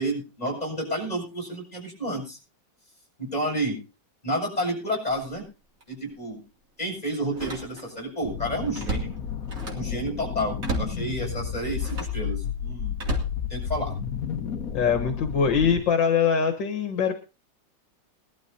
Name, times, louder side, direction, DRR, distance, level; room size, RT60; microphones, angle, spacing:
voice 1, 0.0-2.4 3.2-3.8 4.2-5.4 5.9-6.4 6.8-9.1 9.7-13.0 13.5-13.9, right 1 dB, 20° left, -1 dB, 7.2 m, -30 dB
Slam, 5.2-5.4 5.8-5.9 7.2-8.1 8.4-10.0 10.6-11.0 11.8-12.2 12.9-14.0 14.6-14.9, right 2 dB, 45° right, 3.2 m, -34 dB
sound 1, 8.2-15.8, left 8 dB, 55° left, 1.5 m, -32 dB
voice 2, 14.7-17.1, left 6 dB, 75° left, 7 dB, 2.1 m, -23 dB
21.5 x 12.5 x 2.8 m, 0.30 s
omnidirectional pair, 2.0 m